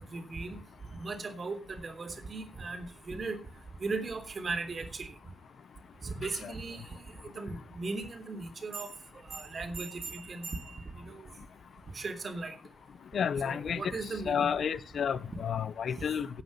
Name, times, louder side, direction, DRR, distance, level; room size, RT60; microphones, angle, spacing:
voice 1, 0.1-0.6 1.0-3.4 3.8-5.2 6.0-8.9 9.3-11.3 11.9-12.6 13.4-14.5, right 3 dB, 50° right, 3.2 m, -38 dB
voice 2, 13.1-13.9 14.3-16.3, left 7 dB, 90° left, 0.7 m, -31 dB
17.0 x 9.0 x 5.4 m
wide cardioid pair, 100°, 0 cm